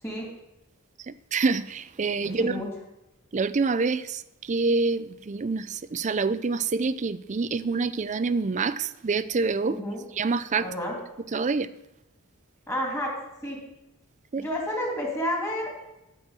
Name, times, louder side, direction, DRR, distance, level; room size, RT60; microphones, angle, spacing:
voice 1, 1.1-2.6 3.3-9.8 10.2-10.7 11.3-11.7 14.3-14.4, right 4 dB, 35° right, 14 dB, 0.4 m, -26 dB
voice 2, 2.2-2.7 9.7-10.0 10.6-11.0 12.7-13.2 13.4-13.6 14.4-15.7, equal, 15° left, -2 dB, 3.0 m, -30 dB
12.5 x 4.6 x 7.5 m, 0.91 s
head